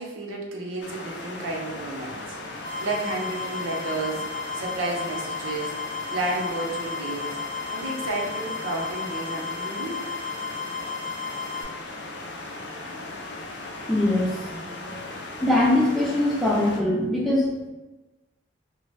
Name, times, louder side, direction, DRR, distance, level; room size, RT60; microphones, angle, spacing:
voice 1, 0.0-2.2 2.5-4.3 4.5-5.8 6.1-7.3 7.7-10.0, right 2 dB, 90° right, -1 dB, 0.6 m, -31 dB
sound 1, 0.8-16.8, left 2 dB, 60° left, 0.4 m, -38 dB
sound 2, 2.6-11.6, left 5 dB, 45° right, 0.6 m, -34 dB
voice 2, 13.9-17.5, left 1 dB, ahead, -6 dB, 0.5 m, -23 dB
2.7 x 2.0 x 3.1 m, 1.1 s
head